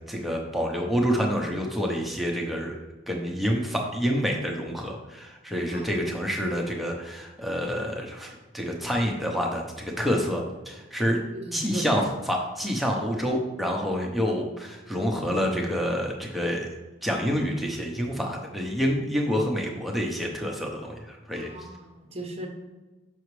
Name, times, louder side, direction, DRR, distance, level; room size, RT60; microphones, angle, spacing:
voice 1, 0.1-2.8 3.1-11.2 11.5-16.7 17.0-21.5, equal, ahead, 0 dB, 0.7 m, -28 dB
voice 2, 11.3-12.1 21.3-22.5, right 1 dB, 30° right, 3 dB, 0.8 m, -37 dB
6.3 x 5.9 x 3.2 m, 1.2 s
head